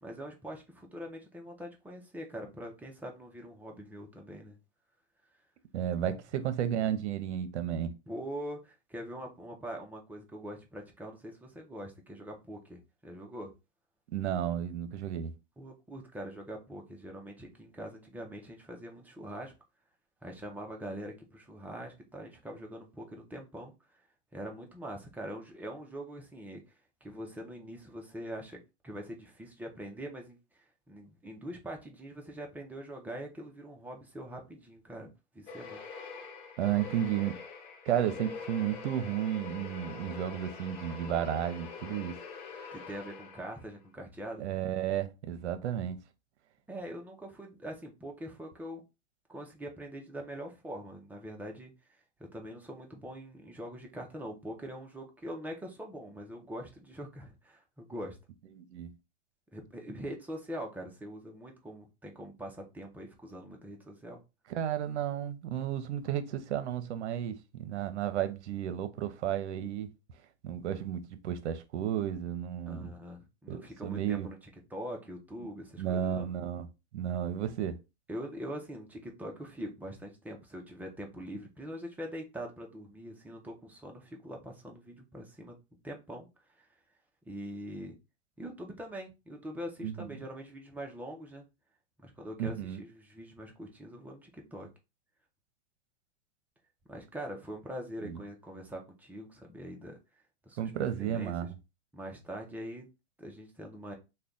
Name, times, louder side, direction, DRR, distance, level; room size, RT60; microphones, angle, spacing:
voice 1, 0.0-4.6 8.1-13.5 15.6-19.5 20.2-23.7 24.3-26.8 27.0-35.1 35.3-35.8 42.7-44.5 46.7-48.8 49.3-58.2 59.5-64.2 72.7-74.4 74.7-76.3 78.1-85.6 85.8-86.3 86.6-86.7 87.3-87.9 88.4-91.4 92.0-94.7 96.9-100.0 100.5-100.7 101.0-101.3 101.9-102.9 103.2-103.9, equal, 5° right, 0.5 m, -43 dB
voice 2, 5.7-7.9 14.1-15.3 36.6-37.4 37.9-42.2 44.4-46.0 58.5-58.9 64.5-69.9 70.4-72.9 73.5-74.3 75.8-76.7 76.9-77.8 89.8-90.1 92.4-92.8 98.0-98.2 100.6-101.5, right 10 dB, 75° right, 0.7 m, -33 dB
sound 1, 35.5-43.7, left 5 dB, 75° left, 1.1 m, -44 dB
3.3 x 2.2 x 3.7 m
hypercardioid pair, 125°, 35 cm